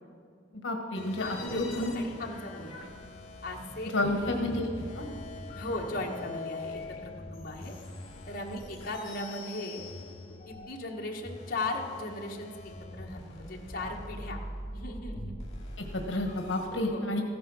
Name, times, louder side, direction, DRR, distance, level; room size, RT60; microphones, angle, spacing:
voice 1, 0.6-1.9 3.9-4.7 5.0-5.1 15.8-17.2, left 2 dB, 75° left, 4 dB, 1.3 m, -30 dB
sound 1, 0.9-16.7, left 2 dB, 35° left, 2.7 m, -43 dB
voice 2, 1.2-2.8 3.4-4.5 5.5-7.7 8.3-9.8 10.5-12.5 12.9-14.4 14.7-15.3 16.7-17.0, left 2 dB, 50° left, -1 dB, 1.5 m, -37 dB
15.0 x 10.5 x 6.2 m, 2.3 s
head